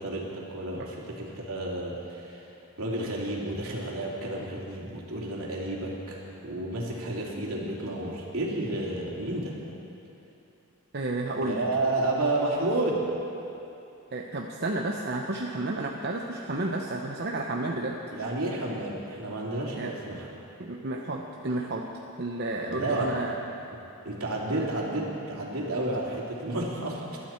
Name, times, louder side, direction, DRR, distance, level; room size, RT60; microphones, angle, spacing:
voice 1, 0.0-2.5 2.8-9.6 11.4-13.1 18.1-20.3 22.7-23.1 23.7-23.8 24.0-27.2, right 2 dB, 70° right, -3 dB, 2.9 m, -31 dB
voice 2, 10.9-11.6 14.1-18.0 19.8-19.9 20.6-21.9 22.2-23.3 24.5-24.6, right 2 dB, 50° right, 0 dB, 0.8 m, -31 dB
22.0 x 12.5 x 4.5 m, 2.8 s
head